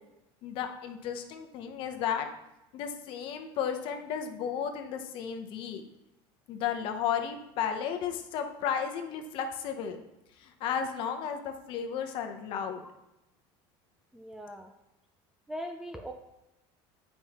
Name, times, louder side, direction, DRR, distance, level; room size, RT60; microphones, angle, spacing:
voice 1, 0.4-2.3 2.7-5.8 6.5-10.0 10.4-12.8, left 8 dB, 45° left, 5 dB, 0.8 m, -33 dB
voice 2, 14.1-14.7 15.5-16.1, equal, 5° right, 3 dB, 0.3 m, -40 dB
9.1 x 5.3 x 2.9 m, 0.90 s
cardioid pair, 170°, 12 cm